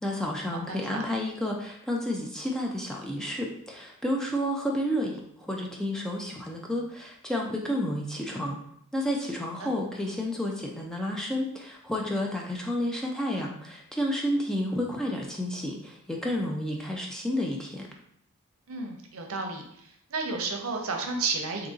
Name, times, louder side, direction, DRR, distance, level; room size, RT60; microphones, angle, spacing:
voice 1, 0.0-8.6 8.9-17.9, left 1 dB, 5° left, -1 dB, 0.3 m, -31 dB
voice 2, 0.5-1.0 9.6-9.7 18.7-19.6 20.1-21.7, right 3 dB, 75° right, 3 dB, 0.6 m, -32 dB
2.8 x 2.6 x 3.7 m, 0.72 s
head